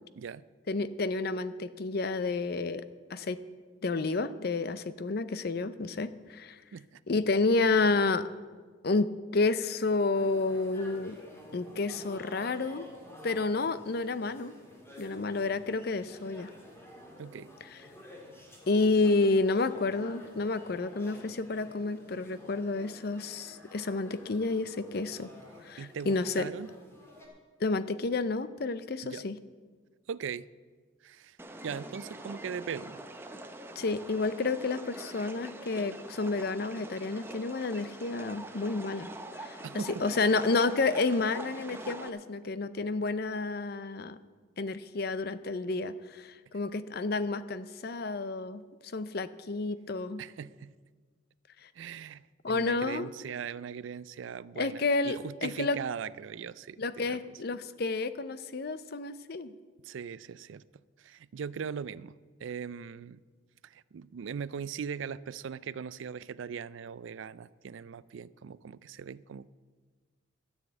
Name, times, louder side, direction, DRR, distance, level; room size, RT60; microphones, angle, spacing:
voice 1, 0.7-2.8 3.1-3.4 3.8-6.6 7.1-8.3 8.8-11.2 11.5-12.9 13.2-14.5 15.0-16.5 18.7-25.3 25.6-26.5 27.6-29.4 33.8-39.1 39.4-44.2 44.6-48.6 48.9-50.2 52.4-53.1 54.6-55.8 56.8-59.5, left 3 dB, 55° left, 14 dB, 0.6 m, -30 dB
sound 1, 10.1-27.3, left 1 dB, 15° left, 2.1 m, -51 dB
voice 2, 17.2-17.5 25.8-26.7 29.0-29.3 30.1-30.5 31.0-31.4 31.6-33.0 39.6-40.0 50.2-50.7 51.7-57.4 59.8-60.6 61.0-62.1 62.4-63.2 63.6-69.5, right 7 dB, 80° right, 19 dB, 0.4 m, -40 dB
sound 2, 31.4-42.1, right 1 dB, 10° right, 0.7 m, -44 dB
13.0 x 7.2 x 8.1 m, 1.5 s
head